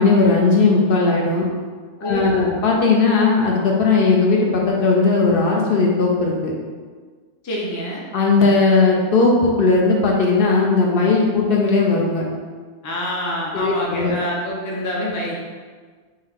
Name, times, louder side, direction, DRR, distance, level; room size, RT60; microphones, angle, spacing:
voice 1, 0.0-1.5 2.0-6.5 8.1-12.3 13.5-14.1, left 3 dB, 65° left, -1 dB, 0.7 m, -17 dB
voice 2, 2.0-2.5 7.4-8.0 12.8-15.3, equal, 25° left, -3 dB, 0.4 m, -26 dB
3.7 x 2.7 x 3.4 m, 1.5 s
omnidirectional pair, 1.1 m